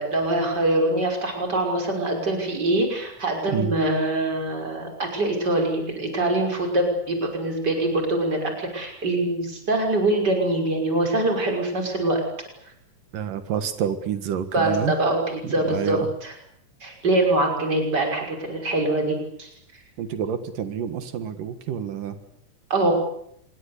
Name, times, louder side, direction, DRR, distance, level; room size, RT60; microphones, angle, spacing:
voice 1, 0.0-12.2 14.5-16.4 16.8-19.5 22.7-22.9, right 2 dB, 30° right, 3 dB, 6.4 m, -24 dB
voice 2, 13.1-14.9 15.4-16.0 20.0-22.1, right 8 dB, 85° right, 9 dB, 3.4 m, -28 dB
26.5 x 22.5 x 8.4 m, 0.72 s
omnidirectional pair, 3.7 m